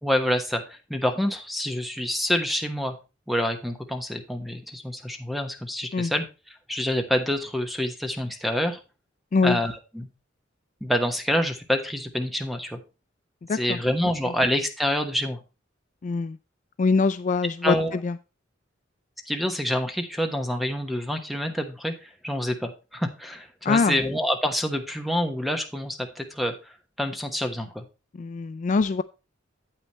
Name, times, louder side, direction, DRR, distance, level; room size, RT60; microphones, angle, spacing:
voice 1, 0.0-2.9 3.3-6.3 6.7-8.8 9.4-10.1 10.8-12.8 13.5-15.4 17.6-17.9 19.3-26.7 27.0-27.8, equal, ahead, 6 dB, 1.2 m, -27 dB
voice 2, 13.5-13.8 14.2-14.3 16.0-16.4 16.8-18.2 23.6-24.0 28.1-29.0, left 4 dB, 40° left, 12 dB, 0.3 m, -23 dB
8.8 x 8.3 x 3.0 m, 0.29 s
head